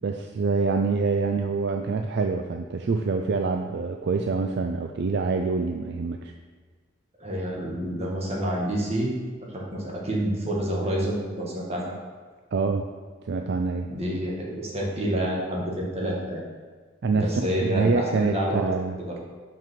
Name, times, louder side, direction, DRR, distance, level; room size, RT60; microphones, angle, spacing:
voice 1, 0.0-6.3 12.5-12.9 13.2-13.9 17.0-19.2, right 4 dB, 60° right, 5 dB, 0.4 m, -26 dB
voice 2, 7.2-9.1 9.5-11.9 13.9-16.4 17.1-18.7 19.0-19.2, equal, 30° right, -3 dB, 1.6 m, -28 dB
5.5 x 5.4 x 5.9 m, 1.5 s
head